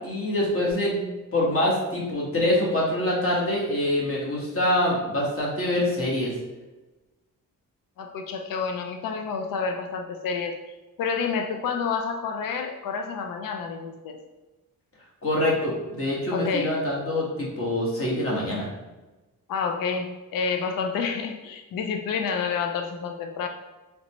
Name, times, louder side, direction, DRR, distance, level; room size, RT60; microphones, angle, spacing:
voice 1, 0.0-6.3 15.2-18.7, left 1 dB, 40° left, -4 dB, 1.4 m, -25 dB
voice 2, 8.0-10.6 11.0-14.2 16.3-16.8 19.5-23.5, left 5 dB, 80° left, 4 dB, 0.5 m, -29 dB
3.9 x 3.3 x 3.0 m, 1.1 s
cardioid pair, 120°, 33 cm